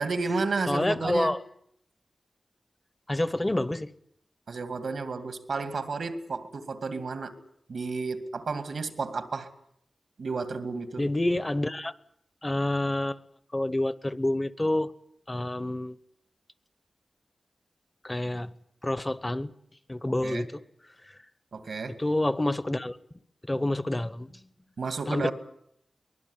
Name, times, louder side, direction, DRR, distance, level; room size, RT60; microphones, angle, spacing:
voice 1, 0.0-1.3 4.5-7.4 7.7-9.5 10.2-11.1 20.2-20.4 21.5-22.0 24.8-25.3, right 4 dB, 85° right, 2.3 m, -32 dB
voice 2, 0.7-1.4 3.1-3.9 11.0-11.9 12.4-13.2 13.5-14.9 15.3-16.0 18.0-18.5 18.8-19.5 19.9-20.6 22.0-23.0 23.5-24.3 25.1-25.3, left 1 dB, 20° left, 0.9 m, -28 dB
23.5 x 21.0 x 9.8 m
wide cardioid pair, 115°, 0 cm